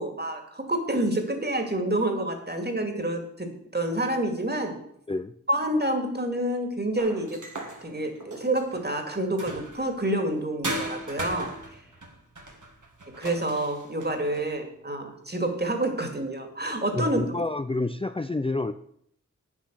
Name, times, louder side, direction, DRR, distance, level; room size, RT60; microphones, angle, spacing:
voice 1, 0.0-4.8 5.5-7.4 7.8-11.5 13.2-17.2, right 1 dB, 35° right, 4 dB, 2.3 m, -28 dB
sound 1, 7.0-10.0 10.6-14.5, right 1 dB, 75° right, 2.1 m, -38 dB
voice 2, 16.9-18.7, left 2 dB, 20° left, 9 dB, 0.5 m, -28 dB
9.3 x 7.3 x 6.3 m, 0.69 s
wide cardioid pair, 45°, 30 cm